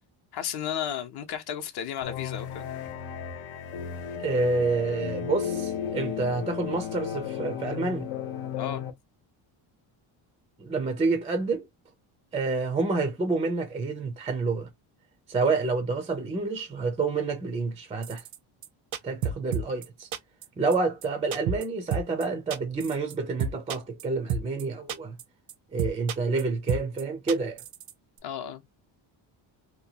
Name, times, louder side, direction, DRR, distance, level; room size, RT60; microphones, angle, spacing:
voice 1, 0.3-2.7 8.6-8.8 28.2-28.6, left 9 dB, 55° left, 0.7 m, -33 dB
sound 1, 2.0-8.9, left 8 dB, 90° left, 0.9 m, -34 dB
voice 2, 4.2-8.1 10.6-11.7 12.3-14.7 15.3-18.2 19.0-20.1 20.6-25.2 25.7-27.6, right 3 dB, 15° right, 0.3 m, -28 dB
sound 2, 18.0-18.4 18.6-18.7 18.9-19.9 20.1-20.5 20.7-20.8 21.0-21.1 21.3-21.7 21.9-22.2 22.5-23.1 23.4-24.0 24.3-24.6 24.9-25.2 25.5-25.6 25.8-26.4 26.7-27.0 27.3-27.9 28.2-28.3, right 7 dB, 85° right, 0.7 m, -30 dB
2.8 x 2.2 x 2.7 m
cardioid pair, 170°, 49 cm